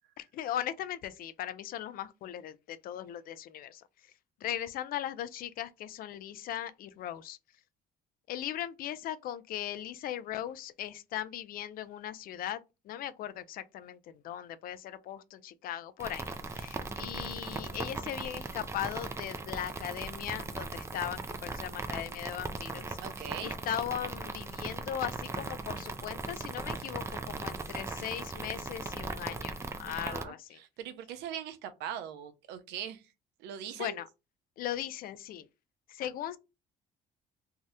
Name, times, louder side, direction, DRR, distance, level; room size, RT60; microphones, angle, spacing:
voice 1, 0.2-3.8 4.4-7.4 8.3-12.6 12.9-23.0 23.4-30.6 33.7-34.1 34.6-35.4 35.9-36.4, left 11 dB, 60° left, 0.4 m, -38 dB
sound 1, 16.0-30.2, right 3 dB, 15° right, 0.4 m, -39 dB
voice 2, 23.0-23.5 29.9-33.0 33.4-34.0, right 9 dB, 85° right, 0.5 m, -41 dB
2.7 x 2.0 x 3.4 m
cardioid pair, 110°, 17 cm